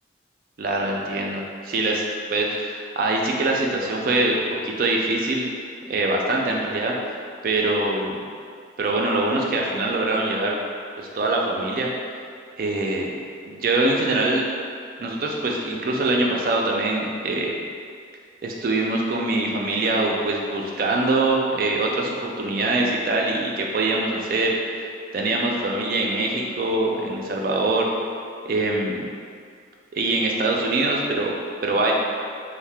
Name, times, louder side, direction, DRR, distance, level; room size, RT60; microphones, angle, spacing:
voice 1, 0.6-2.0 2.3-4.3 4.6-5.5 5.9-6.9 7.4-8.2 8.8-10.6 11.0-11.9 12.6-13.1 13.5-14.4 15.0-17.5 18.4-24.6 25.1-27.9 28.5-29.0 29.9-31.9, right 2 dB, 50° right, -1 dB, 0.3 m, -23 dB
2.7 x 2.1 x 3.3 m, 2.2 s
head